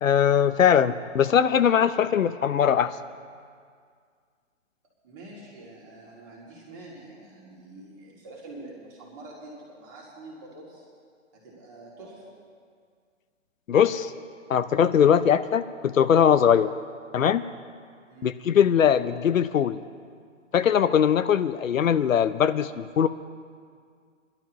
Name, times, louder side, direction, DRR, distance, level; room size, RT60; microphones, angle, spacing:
voice 1, 0.0-3.0 13.7-14.1 14.5-16.7 17.1-17.5 18.2-19.8 20.5-23.1, left 8 dB, 85° left, 12 dB, 0.7 m, -21 dB
voice 2, 5.0-10.9 11.3-12.4 18.1-18.4, right 2 dB, 15° right, -4 dB, 2.2 m, -45 dB
25.0 x 12.0 x 3.0 m, 2.1 s
hypercardioid pair, 175°, 39 cm